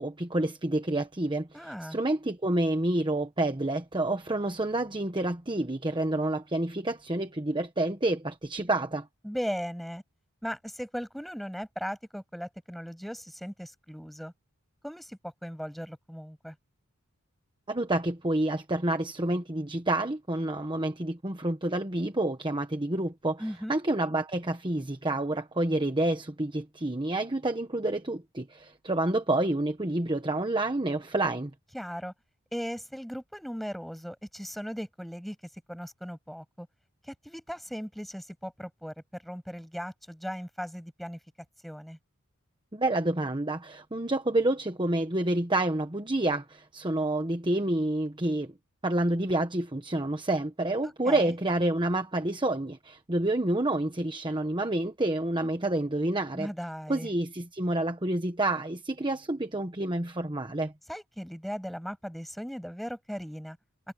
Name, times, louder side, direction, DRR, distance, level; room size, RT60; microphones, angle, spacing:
voice 1, 0.0-9.1 17.7-23.4 23.7-31.5 42.7-48.5 48.8-56.5 56.9-60.7, right 1 dB, 20° right, 1.2 m, -28 dB
voice 2, 1.5-2.0 9.2-10.0 10.4-14.3 14.8-16.6 23.4-23.8 31.7-32.1 32.5-35.4 35.7-36.7 37.0-41.2 41.6-42.0 51.0-51.3 56.3-57.1 60.9-63.6, equal, ahead, 7.9 m, -38 dB
head